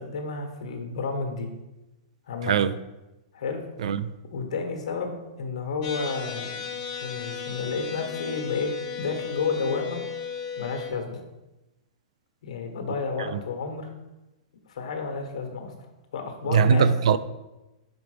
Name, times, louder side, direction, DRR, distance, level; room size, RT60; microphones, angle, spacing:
voice 1, 0.0-1.5 2.3-2.5 3.3-3.6 4.3-6.6 7.0-10.0 10.6-11.2 12.4-13.9 14.7-15.7 16.1-16.9, left 4 dB, 80° left, 1.3 m, -31 dB
sound 1, 5.8-10.9, left 6 dB, 45° left, 1.3 m, -35 dB
voice 2, 16.5-17.2, right 6 dB, 75° right, 0.4 m, -20 dB
5.0 x 4.6 x 5.0 m
supercardioid pair, 160°, 3 cm